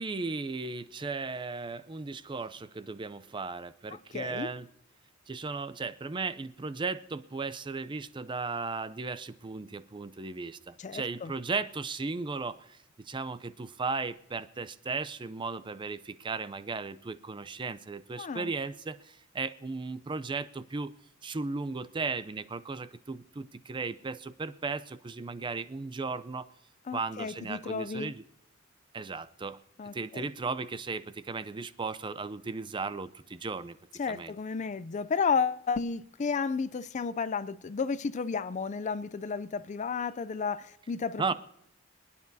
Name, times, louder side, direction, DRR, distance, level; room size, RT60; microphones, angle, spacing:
voice 1, 0.0-4.7 5.3-20.9 21.2-26.5 26.9-28.2 28.9-29.6 29.9-33.8 34.1-34.3 41.2-41.3, right 4 dB, 25° right, 0.4 m, -36 dB
voice 2, 4.1-4.5 10.8-11.3 18.2-18.5 26.9-28.1 29.8-30.3 34.0-41.2, left 5 dB, 35° left, 0.4 m, -32 dB
26.0 x 9.7 x 2.7 m
head